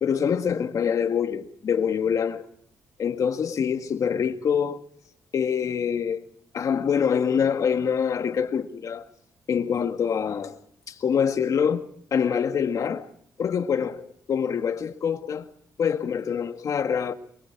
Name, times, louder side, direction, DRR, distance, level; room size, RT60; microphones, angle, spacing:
voice 1, 0.0-2.4 3.0-4.8 5.3-6.2 6.5-9.1 9.5-10.6 10.9-13.1 13.4-15.5 15.8-17.1, left 7 dB, 55° left, 2.0 m, -25 dB
24.5 x 23.0 x 4.8 m
cardioid pair, 100°, 7 cm